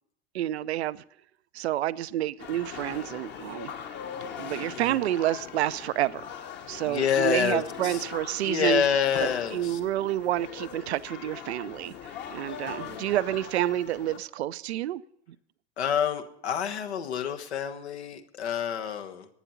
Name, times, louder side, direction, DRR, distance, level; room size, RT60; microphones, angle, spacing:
voice 1, 0.3-1.0 1.5-3.7 4.4-6.2 6.7-8.8 9.2-15.0, right 13 dB, 75° right, 16 dB, 0.5 m, -29 dB
sound 1, 2.4-14.2, left 7 dB, 35° left, 1.2 m, -41 dB
voice 2, 6.8-8.0 8.4-9.8 12.8-13.0 15.8-19.3, left 8 dB, 75° left, 6 dB, 1.3 m, -28 dB
11.0 x 9.1 x 7.0 m, 0.71 s
hypercardioid pair, 90°, 33 cm